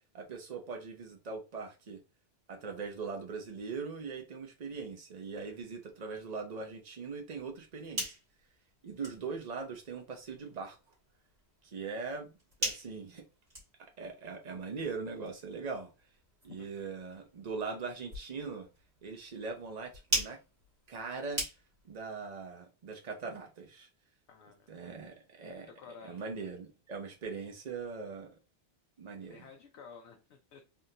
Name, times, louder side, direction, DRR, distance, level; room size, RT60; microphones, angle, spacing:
voice 1, 0.1-2.0 2.5-8.2 8.8-10.8 11.6-12.3 12.6-13.2 14.0-15.9 16.4-18.7 19.0-20.4 20.9-21.4 21.8-23.9 24.7-25.7 26.0-28.4 29.0-29.5, right 4 dB, 45° right, 0.8 m, -41 dB
sound 1, 7.6-22.0, equal, 65° right, 1.9 m, -42 dB
voice 2, 24.3-25.0 25.5-26.2 29.2-30.6, left 5 dB, 85° left, 0.9 m, -53 dB
3.7 x 2.5 x 2.7 m
omnidirectional pair, 1.1 m